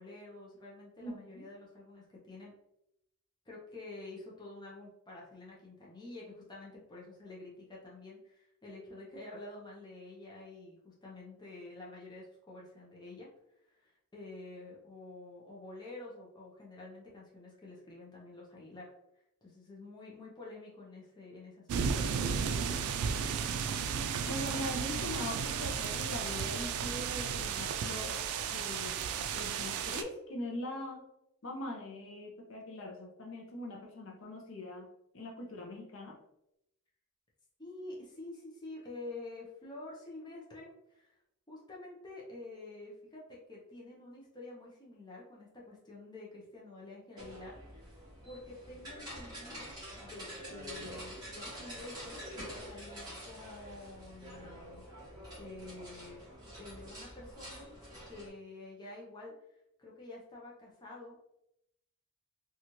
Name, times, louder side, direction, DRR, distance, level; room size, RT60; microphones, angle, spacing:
voice 1, 0.0-2.5 3.5-13.3 13.8-18.9 19.4-23.3 37.6-41.2 41.5-48.0 48.2-52.2 52.7-56.2 56.6-57.7 58.1-59.3 59.8-61.4, left 2 dB, 20° left, -4 dB, 0.6 m, -49 dB
voice 2, 1.0-1.5 24.3-28.2 28.5-31.0 31.4-34.9 35.1-36.2, left 1 dB, 60° left, 0 dB, 0.6 m, -42 dB
sound 1, 21.7-30.0, right 6 dB, 85° right, 0.3 m, -34 dB
sound 2, 47.2-58.3, equal, 20° right, 1.0 m, -47 dB
3.0 x 2.4 x 2.8 m, 0.81 s
head